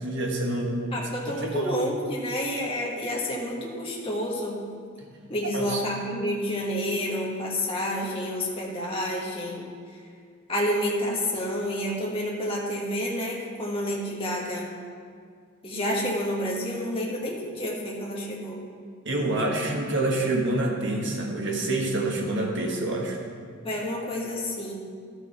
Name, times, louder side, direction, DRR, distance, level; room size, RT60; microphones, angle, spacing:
voice 1, 0.0-0.9 1.4-1.7 5.5-5.8 19.0-23.2, right 2 dB, 55° right, 0 dB, 1.4 m, -27 dB
voice 2, 0.9-4.6 5.3-9.7 10.5-14.7 15.6-18.6 23.6-24.7, equal, 25° left, -3 dB, 1.5 m, -29 dB
12.5 x 6.3 x 4.2 m, 2.1 s
head